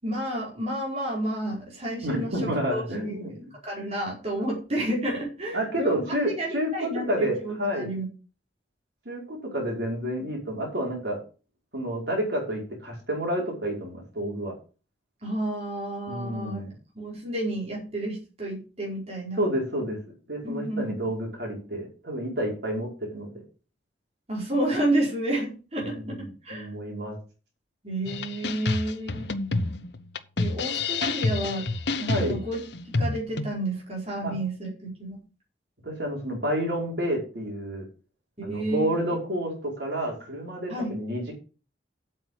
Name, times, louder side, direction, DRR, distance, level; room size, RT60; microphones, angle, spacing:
voice 1, 0.0-8.1 15.2-16.6 16.9-19.4 20.4-21.1 24.3-26.7 27.8-29.3 30.4-31.7 32.0-32.6 32.9-35.2 38.4-38.9 40.7-40.9, right 1 dB, 35° right, -3 dB, 4.7 m, -31 dB
voice 2, 2.0-3.3 5.5-7.9 9.0-11.2 11.7-14.5 16.1-16.7 19.4-20.0 20.3-23.3 25.9-27.2 32.1-32.4 34.2-34.3 35.8-37.8 38.4-41.3, right 1 dB, 70° right, -1 dB, 4.9 m, -29 dB
sound 1, 28.1-33.5, left 3 dB, 65° left, 0.9 m, -28 dB
8.5 x 7.6 x 6.4 m, 0.35 s
head